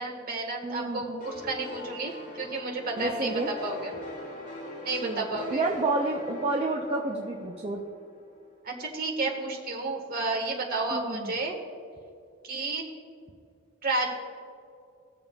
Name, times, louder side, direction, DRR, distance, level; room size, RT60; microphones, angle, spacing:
voice 1, 0.0-3.3 3.6-3.9 4.8-5.6 8.6-11.5 12.4-12.8 13.8-14.1, right 3 dB, 45° right, 0 dB, 1.6 m, -31 dB
voice 2, 0.6-1.2 3.0-3.5 5.0-7.8 10.9-11.3, right 2 dB, 30° right, -1 dB, 0.6 m, -30 dB
sound 1, 1.2-8.7, left 1 dB, 40° left, 1.7 m, -42 dB
18.0 x 7.0 x 2.4 m, 2.3 s
head